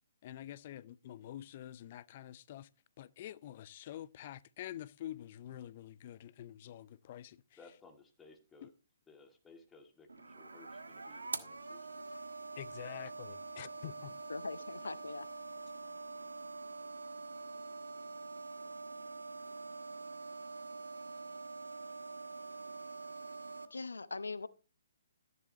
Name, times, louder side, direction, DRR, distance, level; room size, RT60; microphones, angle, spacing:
voice 1, 0.2-2.7 3.0-7.4 8.6-8.7 12.6-14.1, left 12 dB, 40° left, 0.6 m, -47 dB
voice 2, 7.6-8.7 9.1-12.0, left 3 dB, 10° left, 2.0 m, -59 dB
sound 1, 10.1-23.6, right 3 dB, 80° right, 1.3 m, -45 dB
voice 3, 14.3-15.3 23.7-24.5, left 3 dB, 80° left, 0.8 m, -41 dB
13.5 x 11.0 x 2.9 m
figure-of-eight pair, 135°, 0 cm